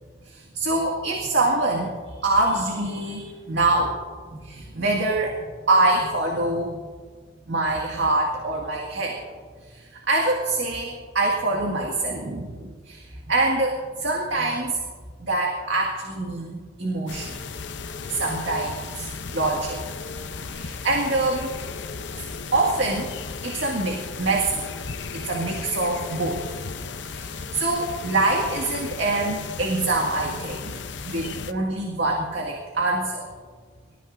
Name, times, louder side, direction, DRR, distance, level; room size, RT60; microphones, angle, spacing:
voice 1, 0.3-4.0 4.3-6.8 7.5-9.2 9.7-14.8 15.2-17.4 18.1-19.8 20.5-21.5 22.5-23.1 23.4-24.7 25.1-26.4 27.1-30.7 31.0-33.3, right 2 dB, 75° right, -1 dB, 2.0 m, -25 dB
sound 1, 17.1-31.5, left 4 dB, 70° left, 0.7 m, -35 dB
25.5 x 14.5 x 2.6 m, 1.5 s
head